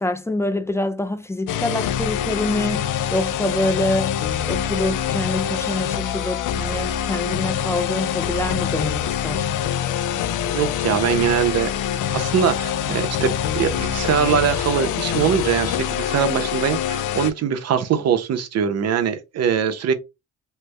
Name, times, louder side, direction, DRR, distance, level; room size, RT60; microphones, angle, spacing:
voice 1, 0.0-4.1 4.5-9.5, left 1 dB, 10° left, 0.4 m, -26 dB
sound 1, 1.5-17.3, left 9 dB, 90° left, 0.5 m, -25 dB
voice 2, 10.4-11.7 12.1-19.9, right 8 dB, 55° right, 0.7 m, -22 dB
3.3 x 2.0 x 3.2 m
cardioid pair, 90°, 30 cm